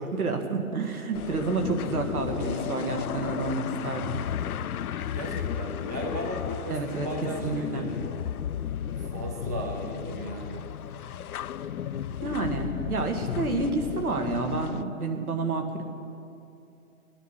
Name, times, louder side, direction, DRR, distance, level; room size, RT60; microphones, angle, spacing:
voice 1, 0.1-4.2 6.7-7.1 7.4-7.9 12.2-15.8, right 3 dB, 85° right, 4 dB, 1.9 m, -29 dB
sound 1, 1.1-14.8, left 9 dB, 80° left, 0.6 m, -34 dB
voice 2, 5.1-8.2 9.0-10.7, right 1 dB, 15° right, 2 dB, 0.4 m, -36 dB
19.5 x 10.0 x 5.7 m, 2.7 s
hypercardioid pair, 145°, 43 cm